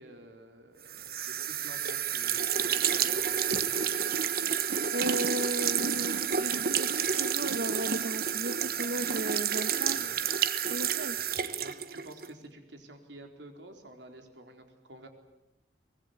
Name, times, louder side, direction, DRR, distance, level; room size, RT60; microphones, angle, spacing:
voice 1, 0.0-3.4 9.9-10.2 11.6-15.1, right 1 dB, 90° right, 5 dB, 4.2 m, -50 dB
sound 1, 0.9-12.3, right 8 dB, 55° right, 1.1 m, -30 dB
voice 2, 4.9-10.0 10.7-11.2, right 1 dB, 70° right, 9 dB, 1.2 m, -36 dB
24.0 x 20.5 x 9.8 m, 0.94 s
head